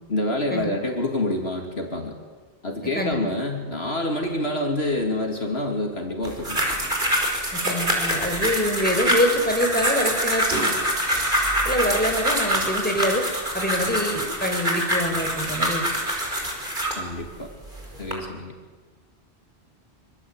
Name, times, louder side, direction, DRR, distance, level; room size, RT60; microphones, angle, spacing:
voice 1, 0.1-2.1 2.6-6.6 16.9-17.5 18.0-18.5, left 1 dB, 70° left, 2 dB, 3.2 m, -27 dB
sound 1, 6.2-17.0 17.7-18.1, equal, 50° right, 5.6 m, -25 dB
voice 2, 7.5-10.5 11.6-13.2 13.5-15.8, equal, 10° left, 3 dB, 4.9 m, -25 dB
25.5 x 25.0 x 9.0 m, 1.4 s
omnidirectional pair, 1.1 m